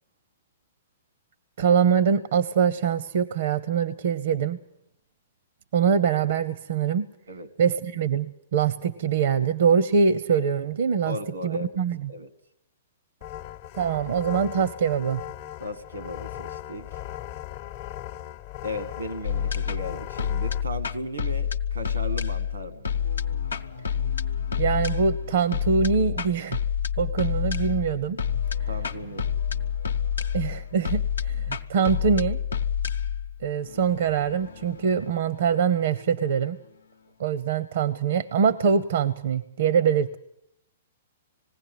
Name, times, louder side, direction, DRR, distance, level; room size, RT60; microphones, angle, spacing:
voice 1, 1.6-4.6 5.7-7.1 7.6-11.2 11.4-12.1 13.7-15.2 24.6-26.6 27.0-28.2 30.3-32.4 33.4-36.6 37.2-40.2, right 6 dB, 65° right, 17 dB, 0.7 m, -23 dB
voice 2, 11.0-11.7 12.1-12.3 15.6-16.9 18.6-22.8 28.7-29.2, left 1 dB, 90° right, 14 dB, 1.6 m, -36 dB
sound 1, 13.2-20.6, left 12 dB, 45° left, 0.7 m, -38 dB
sound 2, 19.2-36.4, left 8 dB, 85° left, 0.8 m, -29 dB
20.0 x 16.0 x 9.2 m, 0.78 s
hypercardioid pair, 120°, 0 cm